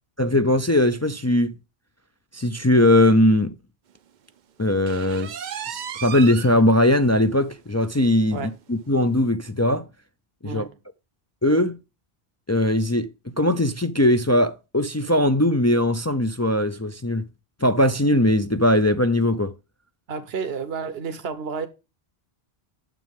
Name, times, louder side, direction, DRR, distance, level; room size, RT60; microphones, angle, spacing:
voice 1, 0.2-1.5 2.3-3.5 4.6-8.4 8.7-9.9 10.4-10.7 11.4-11.8 12.5-13.1 13.4-17.2 17.6-19.5, left 1 dB, 25° left, 0.4 m, -20 dB
sound 1, 4.9-6.6 7.0-7.1 7.5-7.6 8.0-8.1 9.1-9.2, right 8 dB, 55° right, 0.6 m, -34 dB
voice 2, 10.4-10.8 20.1-21.7, right 5 dB, 75° right, 1.2 m, -30 dB
9.1 x 7.1 x 3.5 m
omnidirectional pair, 1.0 m